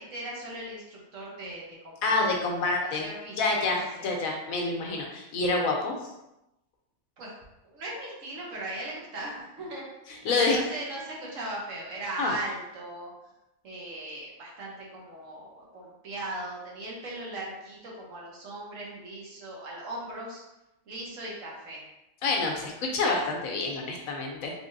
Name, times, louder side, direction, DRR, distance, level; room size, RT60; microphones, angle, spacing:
voice 1, 0.0-2.1 2.5-4.1 7.2-7.3 7.6-13.1 13.6-20.4 20.9-21.8, right 1 dB, 70° right, -4 dB, 1.3 m, -38 dB
voice 2, 2.0-3.1 3.4-6.0 10.2-10.6 12.2-12.3 22.2-24.5, left 3 dB, 80° left, 1 dB, 1.2 m, -27 dB
3.6 x 3.4 x 2.6 m, 0.93 s
omnidirectional pair, 1.4 m